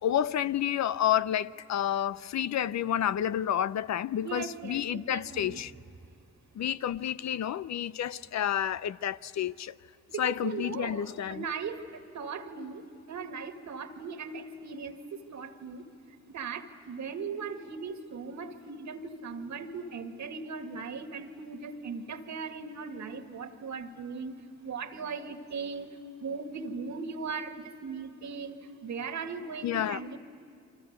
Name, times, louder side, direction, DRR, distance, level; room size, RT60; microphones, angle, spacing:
voice 1, 0.0-5.7 6.6-9.7 10.2-11.5 29.6-30.0, left 10 dB, 65° left, 0.6 m, -30 dB
voice 2, 4.2-5.6 10.1-15.8 16.3-24.4 24.6-25.9 26.2-30.2, right 5 dB, 75° right, 2.1 m, -38 dB
29.5 x 25.0 x 8.1 m
supercardioid pair, 50°, 29 cm